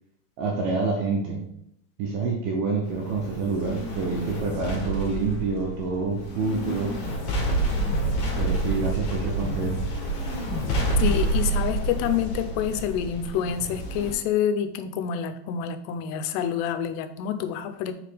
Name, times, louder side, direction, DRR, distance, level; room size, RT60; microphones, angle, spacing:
voice 1, 0.4-1.4 2.0-6.9 8.4-9.8, right 4 dB, 75° right, 0 dB, 2.1 m, -27 dB
sound 1, 2.9-14.1, right 2 dB, 55° left, 2.5 m, -28 dB
voice 2, 11.0-17.9, left 9 dB, 90° left, 9 dB, 2.7 m, -27 dB
7.3 x 3.4 x 5.0 m, 0.74 s
omnidirectional pair, 4.8 m